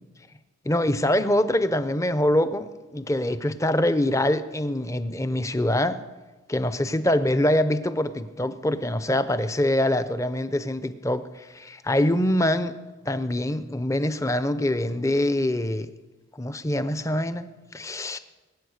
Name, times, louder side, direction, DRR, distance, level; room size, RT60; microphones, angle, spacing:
voice 1, 0.6-6.0 6.5-12.8 13.1-15.9 16.4-18.2, left 1 dB, 15° left, 0.6 m, -24 dB
22.0 x 8.8 x 6.5 m
head